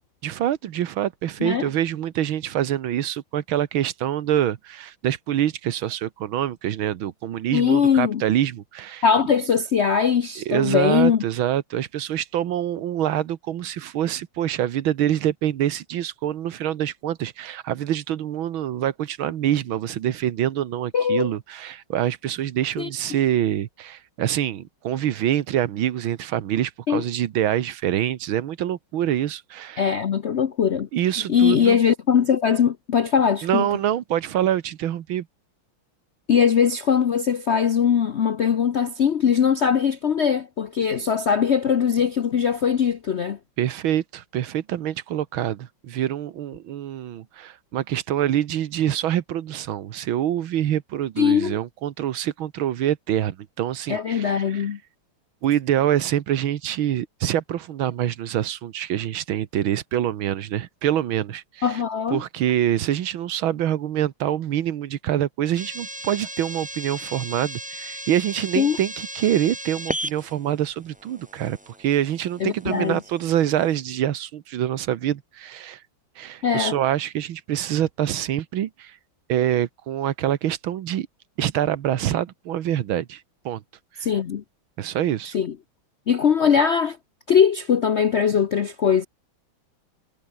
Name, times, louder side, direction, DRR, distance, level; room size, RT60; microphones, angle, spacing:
voice 1, 0.2-9.0 10.4-29.9 30.9-31.8 33.4-35.3 43.6-54.7 55.4-61.8 62.1-75.8 76.2-79.0 79.3-81.1 81.4-83.6 84.8-85.3, right 11 dB, 80° right, 1.9 m, -25 dB
voice 2, 7.5-8.2 9.0-11.2 20.9-21.3 22.8-22.9 26.9-27.0 29.8-30.9 31.3-33.7 36.3-43.4 51.2-51.6 53.9-54.8 61.6-62.2 68.6-68.8 72.4-73.0 76.4-76.8 84.0-84.4 85.3-85.5 86.1-87.0 87.3-89.1, left 7 dB, 65° left, 0.7 m, -21 dB
sound 1, 65.6-73.8, right 1 dB, 5° right, 0.6 m, -36 dB
omnidirectional pair, 2.2 m